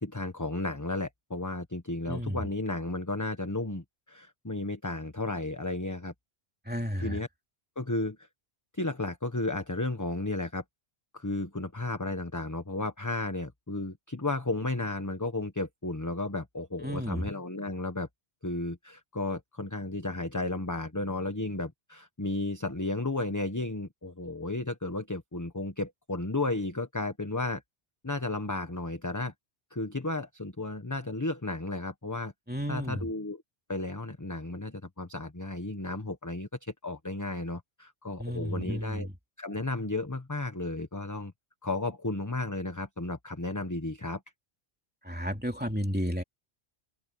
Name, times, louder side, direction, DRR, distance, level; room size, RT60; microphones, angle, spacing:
voice 1, 0.0-6.1 7.0-7.3 7.8-8.3 8.7-10.6 11.1-18.1 18.4-27.6 28.0-29.3 29.7-32.3 32.7-33.4 33.7-39.1 39.4-41.3 41.6-44.2, left 2 dB, 15° left, 1.2 m, -33 dB
voice 2, 2.1-2.4 6.7-7.2 16.8-17.2 32.5-33.0 38.2-39.1 45.0-46.2, equal, 10° right, 2.9 m, -32 dB
open air
omnidirectional pair, 1.1 m